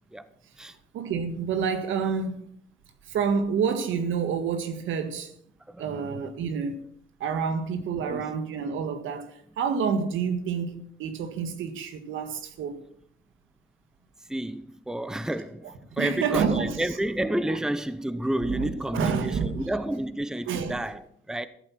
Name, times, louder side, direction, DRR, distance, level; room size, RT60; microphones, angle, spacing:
voice 1, 0.9-2.4 3.1-5.3 5.8-6.8 7.2-9.3 9.6-12.8 16.0-16.8 18.5-19.6 20.5-20.8, right 6 dB, 85° right, 1.7 m, -28 dB
voice 2, 5.7-6.3 8.0-8.3 14.3-21.5, right 1 dB, 5° right, 0.8 m, -30 dB
14.0 x 8.4 x 5.9 m
cardioid pair, 90°, 20 cm